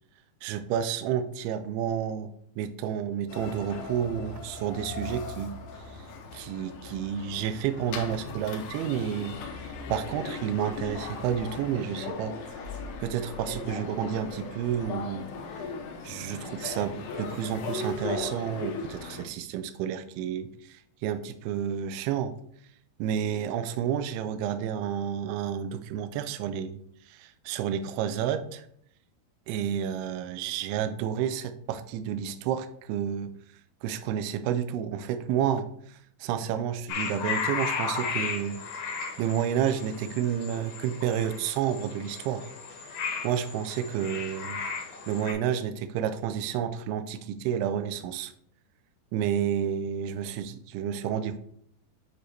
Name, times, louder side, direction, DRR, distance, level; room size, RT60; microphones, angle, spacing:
voice 1, 0.4-5.6 5.9-6.0 6.3-15.3 16.0-22.4 23.0-28.6 29.5-33.3 33.8-38.6 39.2-42.5 43.2-44.6 45.1-48.3 49.1-51.4, right 9 dB, 80° right, 9 dB, 2.4 m, -30 dB
sound 1, 3.3-19.2, left 4 dB, 85° left, 3.0 m, -38 dB
sound 2, 36.9-45.3, left 5 dB, 65° left, 2.2 m, -35 dB
9.3 x 3.3 x 4.3 m, 0.66 s
omnidirectional pair, 4.7 m